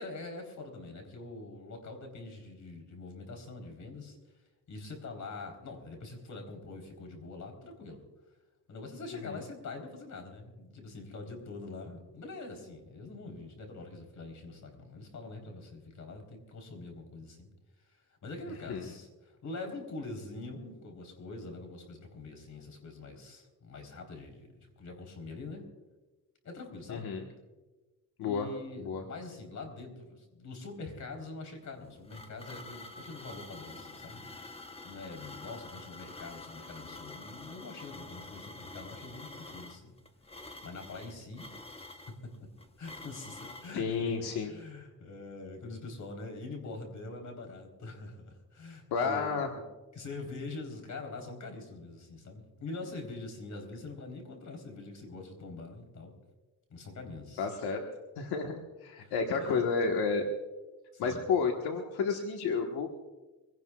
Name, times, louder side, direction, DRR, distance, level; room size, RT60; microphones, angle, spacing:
voice 1, 0.0-4.2 4.7-8.0 8.7-17.5 17.8-25.7 26.4-27.1 28.2-34.2 34.8-39.9 40.6-41.9 42.8-44.1 44.5-49.6 49.9-56.1 56.7-57.5 59.0-59.7 60.9-61.2, left 3 dB, 50° left, 3 dB, 3.9 m, -44 dB
voice 2, 26.9-27.2 28.2-28.5 28.8-29.0 43.7-44.5 48.9-49.5 57.4-57.8 58.2-60.2 61.0-63.0, left 5 dB, 90° left, 2 dB, 1.5 m, -31 dB
sound 1, 31.6-43.8, left 2 dB, 15° left, 1.0 m, -48 dB
24.5 x 17.0 x 2.4 m, 1.2 s
cardioid pair, 105°, 37 cm